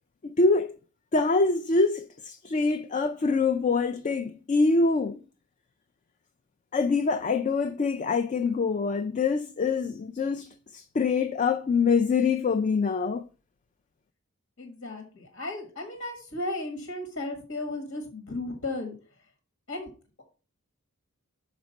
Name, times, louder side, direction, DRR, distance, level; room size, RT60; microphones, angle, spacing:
voice 1, 0.2-0.7 1.1-5.2 6.7-13.3, left 4 dB, 35° left, 0.3 m, -25 dB
voice 2, 14.6-19.0 19.7-19.9, left 2 dB, 75° left, 1.6 m, -35 dB
6.1 x 5.1 x 5.2 m
head